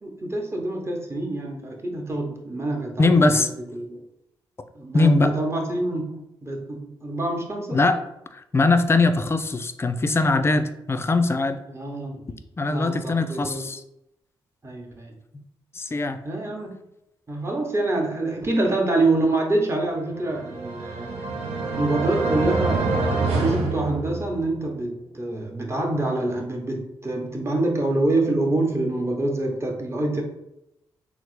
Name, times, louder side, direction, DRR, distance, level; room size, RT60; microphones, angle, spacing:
voice 1, 0.0-3.3 3.7-4.0 4.7-7.8 11.7-12.2 12.7-13.7 14.6-15.1 16.2-16.7 17.3-21.2 21.8-30.2, right 2 dB, 25° right, 1 dB, 0.8 m, -26 dB
voice 2, 3.0-3.5 4.9-5.3 7.7-8.0 8.3-11.6 12.6-13.8 15.3-15.4 15.7-16.2, left 3 dB, 25° left, 9 dB, 0.3 m, -21 dB
sound 1, 20.2-24.6, right 3 dB, 80° right, 0.4 m, -26 dB
3.2 x 2.0 x 3.0 m, 0.84 s
supercardioid pair, 50°, 10 cm